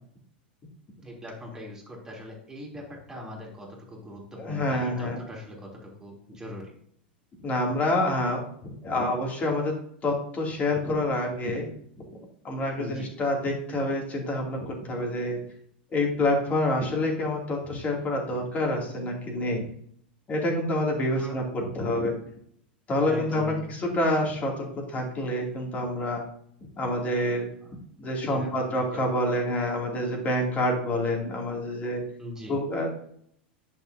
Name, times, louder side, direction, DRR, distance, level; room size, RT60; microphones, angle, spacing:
voice 1, 1.0-6.7 12.8-13.1 21.1-21.4 23.0-23.7 27.6-27.7 28.1-29.1 32.2-32.6, left 1 dB, 10° right, -3 dB, 3.1 m, -41 dB
voice 2, 4.4-5.2 7.4-8.4 8.8-9.7 10.0-11.7 12.4-15.4 15.9-19.6 20.3-22.1 22.9-26.2 26.8-27.5 28.0-32.0 32.5-32.9, left 1 dB, 25° left, 0 dB, 2.8 m, -27 dB
10.0 x 6.5 x 2.8 m, 0.65 s
figure-of-eight pair, 90°, 6 cm